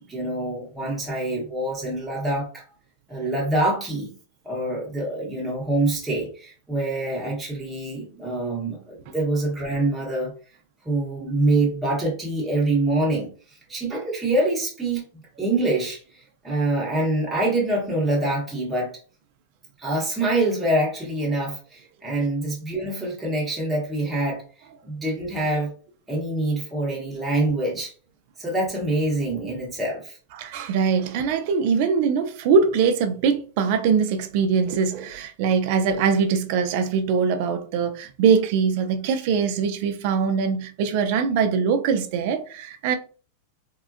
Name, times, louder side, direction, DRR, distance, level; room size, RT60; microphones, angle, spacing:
voice 1, 0.0-2.6 3.1-4.1 4.4-10.3 10.8-13.3 13.7-15.0 15.4-16.0 16.4-18.9 19.8-24.4 24.8-25.7 26.1-27.9 28.4-30.2, right 2 dB, 5° right, 0.9 m, -25 dB
voice 2, 30.4-43.0, right 6 dB, 45° right, 0.4 m, -22 dB
3.6 x 2.1 x 2.4 m
supercardioid pair, 170°, 0 cm